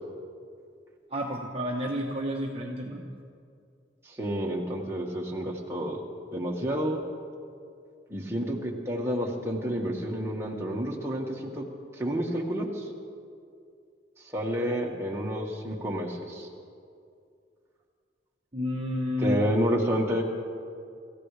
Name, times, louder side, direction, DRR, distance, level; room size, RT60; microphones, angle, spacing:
voice 1, 1.1-3.0 18.5-19.4, equal, 30° right, -2 dB, 1.1 m, -30 dB
voice 2, 4.1-6.0 6.3-7.0 8.1-11.6 11.9-12.8 14.3-16.5 19.2-20.2, equal, 15° right, -2 dB, 1.7 m, -29 dB
25.5 x 15.0 x 3.4 m, 2.4 s
head